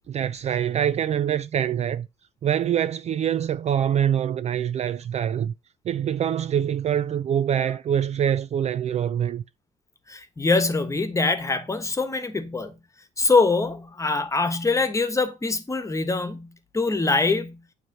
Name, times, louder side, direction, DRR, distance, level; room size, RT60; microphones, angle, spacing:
voice 1, 0.1-2.1 2.4-5.5 5.9-9.4, right 9 dB, 40° right, 0.4 m, -24 dB
voice 2, 10.1-12.7 13.2-17.6, left 3 dB, 20° left, 1.3 m, -24 dB
9.3 x 3.2 x 6.6 m
cardioid pair, 110°, 17 cm